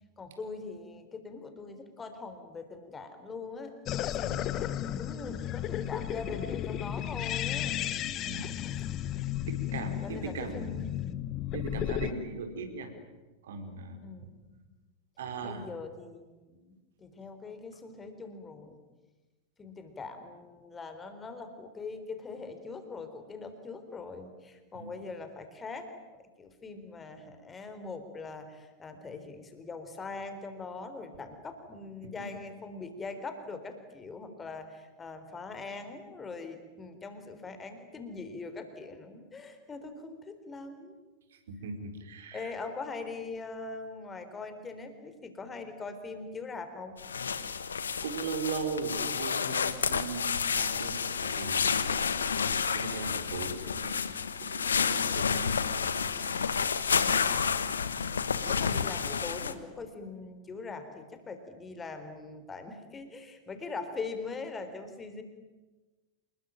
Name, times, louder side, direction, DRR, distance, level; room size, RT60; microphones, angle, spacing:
voice 1, 0.2-4.7 5.0-7.8 9.7-11.0 14.0-14.6 15.4-16.7 17.0-18.8 19.6-25.9 26.4-41.0 42.3-46.9 58.5-65.2, left 4 dB, 15° left, 8 dB, 4.0 m, -42 dB
sound 1, 3.9-12.1, left 11 dB, 35° left, 1.3 m, -34 dB
voice 2, 9.5-10.7 11.5-12.9 13.4-14.3 15.2-15.7 24.7-24.9 41.5-42.5 48.0-51.9 52.7-56.5, right 4 dB, 60° right, 6 dB, 4.6 m, -39 dB
sound 2, 47.0-59.5, left 6 dB, 70° left, 1.4 m, -30 dB
27.5 x 21.5 x 9.1 m, 1.2 s
figure-of-eight pair, 90°, 0 cm